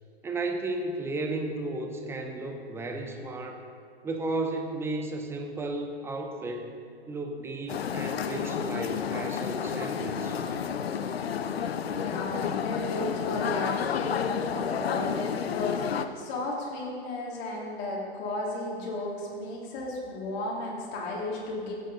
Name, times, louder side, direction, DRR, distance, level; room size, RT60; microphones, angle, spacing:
voice 1, 0.2-3.6 4.0-6.7 7.1-10.4, right 2 dB, 5° right, 4 dB, 0.8 m, -34 dB
sound 1, 7.7-16.1, left 7 dB, 65° left, 0.7 m, -30 dB
voice 2, 12.0-21.7, left 2 dB, 35° left, -3 dB, 2.7 m, -34 dB
16.0 x 8.1 x 4.0 m, 2.4 s
figure-of-eight pair, 115°, 33 cm